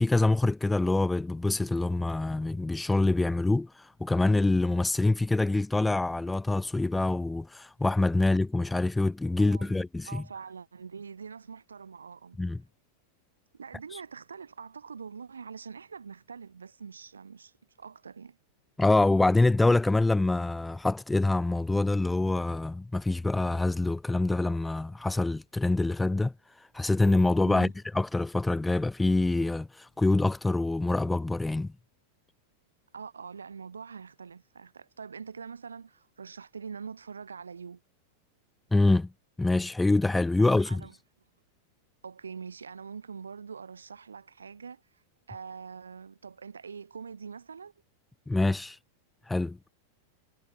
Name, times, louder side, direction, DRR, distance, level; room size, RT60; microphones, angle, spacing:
voice 1, 0.0-10.2 12.4-12.6 18.8-26.3 26.7-31.7 38.7-39.1 39.4-40.8 48.3-48.8 49.3-49.6, left 2 dB, 5° left, 0.4 m, -25 dB
voice 2, 9.4-9.8 10.1-12.4 13.5-18.4 27.5-27.7 32.9-37.8 40.4-40.9 42.0-45.0 45.3-47.7, right 6 dB, 75° right, 0.6 m, -44 dB
sound 1, 26.7-27.5 29.1-30.8 31.1-31.2, right 5 dB, 15° right, 3.2 m, -65 dB
figure-of-eight pair, 90°, 0 cm